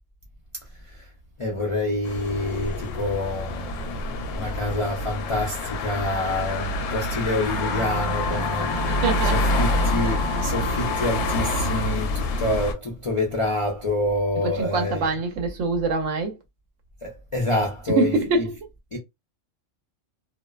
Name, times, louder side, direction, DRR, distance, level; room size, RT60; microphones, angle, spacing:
voice 1, 1.4-15.0 17.0-18.1 18.9-19.0, left 1 dB, 45° left, 0.4 m, -27 dB
sound 1, 2.0-12.7, left 2 dB, 80° left, 0.9 m, -27 dB
sound 2, 7.4-11.9, left 1 dB, 30° right, 0.9 m, -32 dB
voice 2, 8.9-9.4 14.4-16.4 18.0-18.6, right 3 dB, 75° right, 1.0 m, -24 dB
2.6 x 2.1 x 2.3 m
omnidirectional pair, 1.3 m